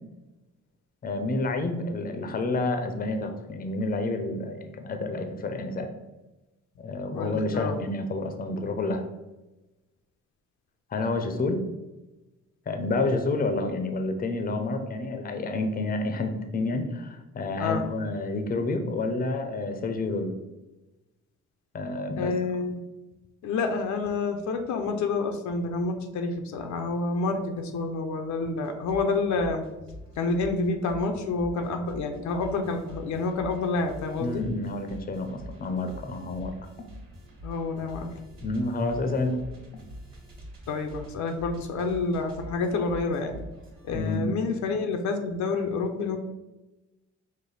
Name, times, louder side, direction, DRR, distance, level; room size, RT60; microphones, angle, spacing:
voice 1, 1.0-5.9 6.8-9.0 10.9-11.6 12.7-20.3 21.7-22.3 34.2-36.5 38.4-39.4 43.9-44.3, left 2 dB, 30° left, 6 dB, 0.6 m, -29 dB
voice 2, 7.1-7.8 17.6-17.8 22.2-22.8 23.4-29.6 30.2-34.4 37.4-38.1 40.7-43.4 43.8-46.2, left 3 dB, 70° left, 5 dB, 0.6 m, -28 dB
sound 1, 28.6-44.1, equal, 45° right, 1.5 m, -45 dB
5.1 x 2.1 x 3.9 m, 1.0 s
cardioid pair, 90°, 30 cm